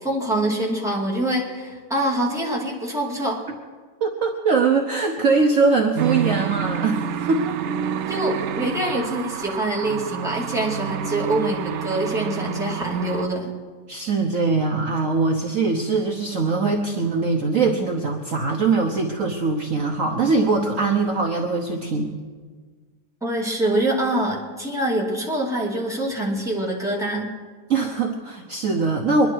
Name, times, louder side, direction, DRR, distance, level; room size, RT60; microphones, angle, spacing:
voice 1, 0.0-3.4 8.1-13.5 23.2-27.3, right 1 dB, ahead, -3 dB, 2.5 m, -25 dB
voice 2, 4.0-7.6 13.9-22.1 27.7-29.3, right 4 dB, 55° right, 2 dB, 1.3 m, -22 dB
sound 1, 5.9-13.3, right 8 dB, 90° right, 0.6 m, -28 dB
24.5 x 11.0 x 4.7 m, 1.5 s
omnidirectional pair, 1.8 m